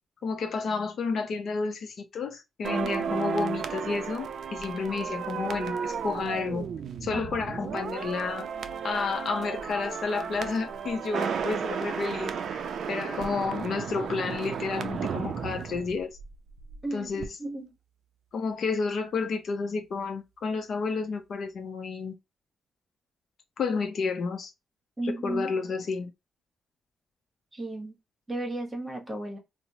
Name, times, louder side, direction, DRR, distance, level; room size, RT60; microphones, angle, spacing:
voice 1, 0.2-6.7 7.0-8.5 8.8-16.2 16.9-17.3 18.3-22.1 23.6-24.5 25.0-26.1, left 4 dB, 55° left, 0.6 m, -31 dB
sound 1, 2.6-16.8 17.0-17.3, right 7 dB, 60° right, 0.4 m, -34 dB
voice 2, 16.8-17.7 25.0-25.5 27.5-27.9 28.3-29.4, right 1 dB, 20° right, 1.0 m, -34 dB
4.3 x 2.0 x 2.6 m
wide cardioid pair, 155°, 0 cm